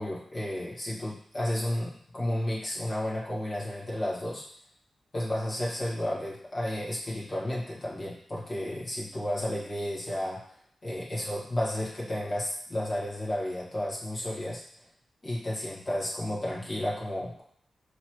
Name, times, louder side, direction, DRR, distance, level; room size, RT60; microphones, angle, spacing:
voice 1, 0.0-4.4 5.1-10.4 10.8-14.6 15.2-17.4, left 1 dB, 50° left, -6 dB, 1.4 m, -32 dB
4.0 x 3.0 x 3.0 m, 0.64 s
cardioid pair, 50°, 0 cm